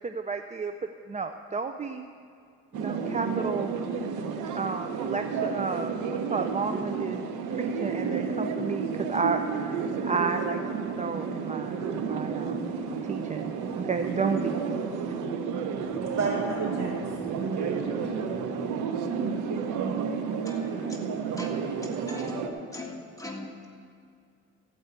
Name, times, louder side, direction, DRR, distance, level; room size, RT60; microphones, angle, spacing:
voice 1, 0.0-0.7 1.1-2.0 2.7-3.7 4.5-7.2 7.5-12.7 13.1-14.4, right 4 dB, 25° right, 7 dB, 0.4 m, -32 dB
sound 1, 2.7-22.5, right 5 dB, 80° right, 0.9 m, -31 dB
voice 2, 15.8-18.5, right 3 dB, 60° right, -3 dB, 3.7 m, -35 dB
voice 3, 20.2-20.9 21.4-21.6 22.1-23.7, left 2 dB, 10° left, -1 dB, 1.8 m, -41 dB
14.5 x 5.4 x 8.0 m, 2.3 s
cardioid pair, 90°, 30 cm